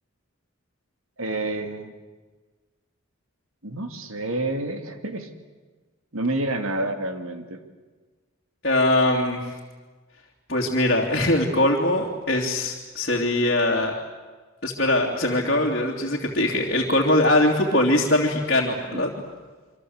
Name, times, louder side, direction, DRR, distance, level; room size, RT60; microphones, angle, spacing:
voice 1, 1.2-1.9 3.6-5.3 6.1-7.6 18.9-19.0, right 2 dB, 75° right, 7 dB, 2.6 m, -28 dB
voice 2, 8.6-9.5 10.5-13.9 14.6-19.1, left 1 dB, 45° left, -3 dB, 3.1 m, -22 dB
27.0 x 25.0 x 8.1 m, 1.3 s
head